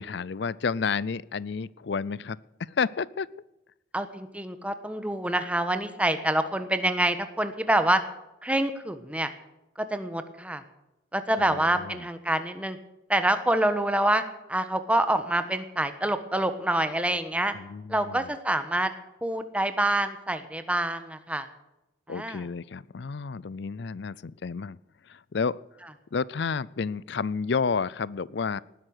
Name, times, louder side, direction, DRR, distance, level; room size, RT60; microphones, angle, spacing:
voice 1, 0.0-3.3 11.4-12.0 17.5-18.3 22.1-24.8 25.1-25.6 26.1-28.6, left 5 dB, 60° left, 22 dB, 0.4 m, -31 dB
voice 2, 3.9-8.0 8.4-9.3 9.8-10.6 11.1-12.8 13.1-14.2 14.5-17.5 17.9-18.9 19.2-21.5 22.1-22.4, right 1 dB, 5° right, 9 dB, 1.2 m, -26 dB
19.0 x 11.0 x 6.6 m, 0.95 s
head